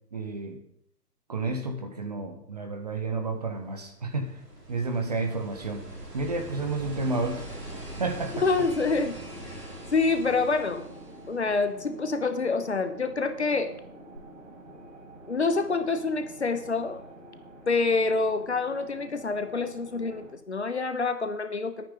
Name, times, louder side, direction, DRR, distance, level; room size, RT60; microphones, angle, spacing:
voice 1, 0.1-0.6 1.3-4.4 4.7-5.9 6.1-7.5 8.0-8.4, right 3 dB, 25° right, 5 dB, 1.2 m, -31 dB
sound 1, 3.5-12.0 14.2-14.3, right 1 dB, 75° right, 4.2 m, -42 dB
sound 2, 6.8-20.3, right 1 dB, 50° right, 4.8 m, -47 dB
voice 2, 8.3-9.2 9.4-9.6 9.9-10.8 11.3-13.7 15.3-17.0 17.7-21.9, left 4 dB, 45° left, 10 dB, 1.1 m, -27 dB
20.0 x 9.2 x 3.8 m, 0.75 s
figure-of-eight pair, 145°, 48 cm